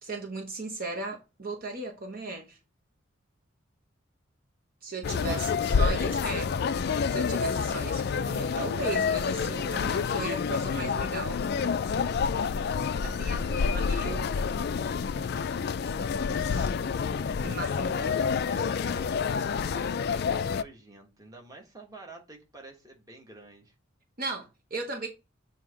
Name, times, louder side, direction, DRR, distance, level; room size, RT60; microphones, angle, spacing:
voice 1, 0.0-2.6 4.8-6.6 7.1-11.5 13.0-14.3 16.4-16.7 17.4-18.0 24.2-25.1, right 3 dB, 45° right, 0.9 m, -37 dB
sound 1, 5.0-20.6, left 6 dB, 50° left, 0.3 m, -28 dB
voice 2, 5.2-5.6 13.0-13.9 17.7-19.1 19.7-23.7, right 2 dB, 15° right, 1.3 m, -49 dB
7.3 x 2.8 x 4.9 m
head